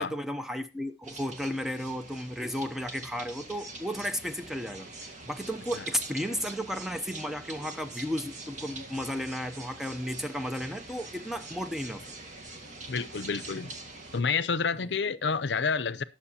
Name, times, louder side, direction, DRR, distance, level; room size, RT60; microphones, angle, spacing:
voice 1, 0.0-4.9 5.2-12.0, equal, ahead, 0.7 m, -34 dB
sound 1, 1.0-14.2, right 2 dB, 45° right, 1.8 m, -44 dB
voice 2, 12.9-13.7 14.1-16.0, left 5 dB, 70° left, 0.6 m, -29 dB
19.5 x 6.6 x 2.8 m
head